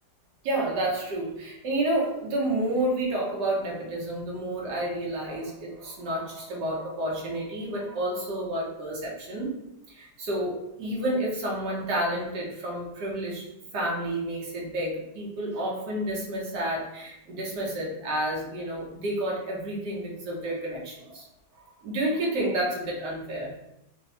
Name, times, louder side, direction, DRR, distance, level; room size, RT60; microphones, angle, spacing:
voice 1, 0.4-9.5 9.9-13.5 13.7-21.3 21.6-23.5, right 1 dB, 80° right, -3 dB, 1.6 m, -30 dB
4.1 x 2.1 x 4.1 m, 0.85 s
omnidirectional pair, 1.8 m